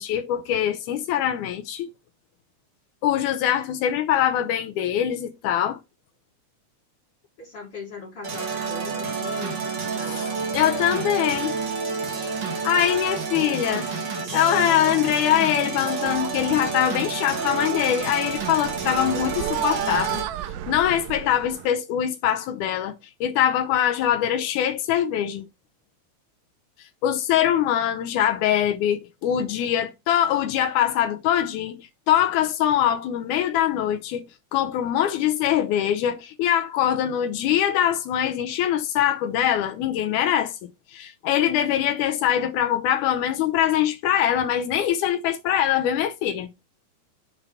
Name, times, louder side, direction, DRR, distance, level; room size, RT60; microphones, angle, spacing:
voice 1, 0.0-1.9 3.0-5.8 10.1-10.3 10.5-11.5 12.6-13.9 14.3-20.2 20.7-23.0 23.2-25.4 27.0-34.3 34.5-40.6 40.9-46.5, left 10 dB, 85° left, 2.2 m, -23 dB
voice 2, 7.4-10.6, left 3 dB, 50° left, 2.7 m, -40 dB
sound 1, 8.2-20.2, right 5 dB, 45° right, 2.1 m, -29 dB
sound 2, 14.6-14.9 15.2-15.5 15.8-21.7, right 11 dB, 80° right, 1.9 m, -34 dB
6.9 x 3.9 x 5.6 m
omnidirectional pair, 3.5 m